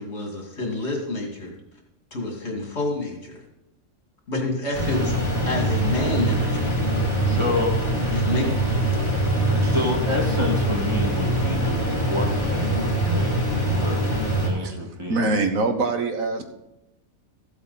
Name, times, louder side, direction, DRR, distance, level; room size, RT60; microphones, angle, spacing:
voice 1, 0.0-1.5 2.1-3.4 4.3-5.2 5.5-6.7 8.1-8.5 9.0-9.2, left 2 dB, 55° left, 0 dB, 2.8 m, -28 dB
sound 1, 4.7-14.5, right 1 dB, 15° left, 3.3 m, -23 dB
voice 2, 7.3-7.7 9.6-15.4, left 1 dB, 20° right, -1 dB, 2.2 m, -29 dB
voice 3, 15.1-16.4, right 3 dB, 85° right, 6 dB, 1.7 m, -23 dB
15.0 x 8.1 x 4.1 m, 0.90 s
omnidirectional pair, 1.4 m